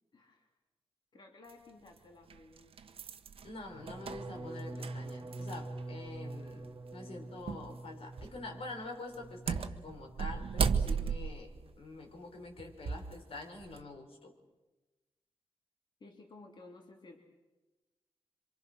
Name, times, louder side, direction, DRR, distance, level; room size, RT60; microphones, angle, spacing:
voice 1, 0.1-0.5 1.1-2.8 16.0-17.2, left 2 dB, 55° left, 1 dB, 3.1 m, -55 dB
sound 1, 1.5-1.6 2.3-5.8 6.1-6.2 7.5-7.7 8.1-8.5 9.1-13.1 13.6-13.8, right 6 dB, 80° right, 1.3 m, -35 dB
voice 2, 3.4-14.3, left 2 dB, 85° left, 2 dB, 5.1 m, -46 dB
sound 2, 3.7-9.6 9.9-10.4 10.7-11.1, right 2 dB, 40° right, 2.0 m, -45 dB
27.0 x 26.0 x 6.4 m, 1.1 s
wide cardioid pair, 130°, 10 cm